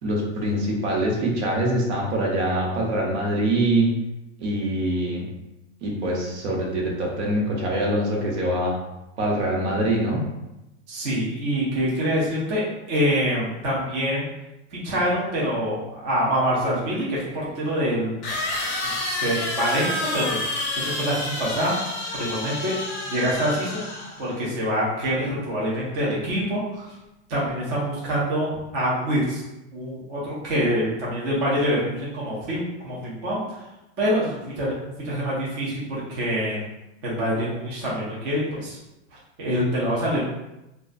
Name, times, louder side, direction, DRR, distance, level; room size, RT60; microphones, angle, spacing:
voice 1, 0.0-3.9 4.4-5.3 5.8-8.7 9.2-10.2, right 1 dB, 70° right, -2 dB, 0.9 m, -24 dB
voice 2, 10.9-12.6 12.9-14.3 14.7-18.3 18.8-22.8 23.0-26.9 27.3-29.4 29.7-33.4 34.0-36.6 37.0-38.8 39.4-40.2, equal, 20° right, -6 dB, 0.3 m, -25 dB
sound 1, 16.6-16.7 18.2-24.3, left 2 dB, 30° left, 0.5 m, -29 dB
2.4 x 2.2 x 2.4 m, 0.93 s
supercardioid pair, 155°, 36 cm